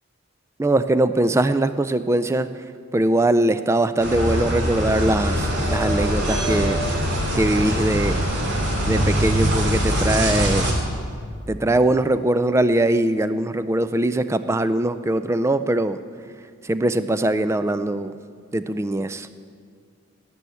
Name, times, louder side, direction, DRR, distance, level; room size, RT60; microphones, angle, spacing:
voice 1, 0.6-2.5 2.9-6.8 7.4-8.2 8.8-10.7 11.5-16.0 16.6-18.1 18.5-19.3, right 1 dB, 15° right, 12 dB, 0.3 m, -21 dB
sound 1, 4.0-10.7, equal, 55° right, 2.7 m, -22 dB
17.5 x 6.9 x 8.4 m, 2.1 s
head